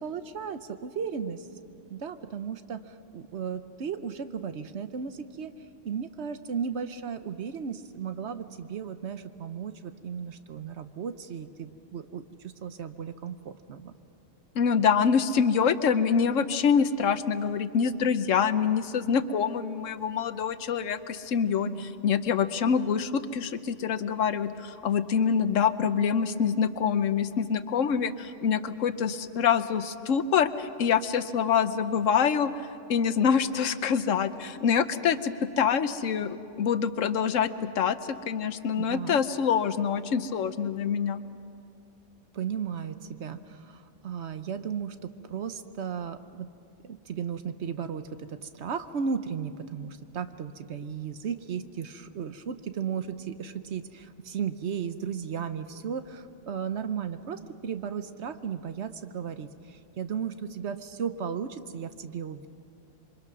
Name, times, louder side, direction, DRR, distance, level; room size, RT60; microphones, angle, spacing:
voice 1, 0.0-1.5 1.9-5.5 5.8-13.9 21.7-21.9 38.8-39.2 42.3-46.5 46.8-62.5, right 7 dB, 65° right, 10 dB, 1.1 m, -35 dB
voice 2, 14.5-21.7 22.0-37.5 37.8-41.2, left 7 dB, 85° left, 12 dB, 1.2 m, -25 dB
27.0 x 24.0 x 6.0 m, 2.5 s
omnidirectional pair, 1.3 m